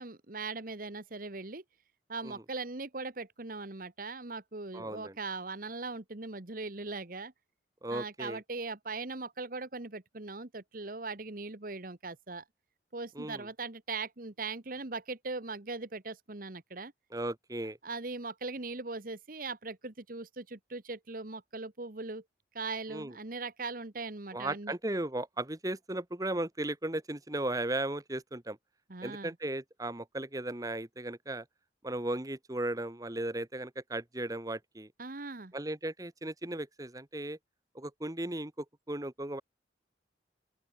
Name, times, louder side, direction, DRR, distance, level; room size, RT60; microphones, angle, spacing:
voice 1, 0.0-1.6 2.1-7.3 7.9-12.4 12.9-16.9 17.8-22.2 22.5-24.7 28.9-29.3 35.0-35.5, right 3 dB, 50° right, 1.4 m, -40 dB
voice 2, 4.7-5.1 7.8-8.4 13.1-13.5 17.1-17.8 22.9-23.1 24.3-28.6 29.0-31.4 31.8-34.9 35.5-37.4 37.7-39.4, right 1 dB, 20° right, 1.2 m, -36 dB
open air
head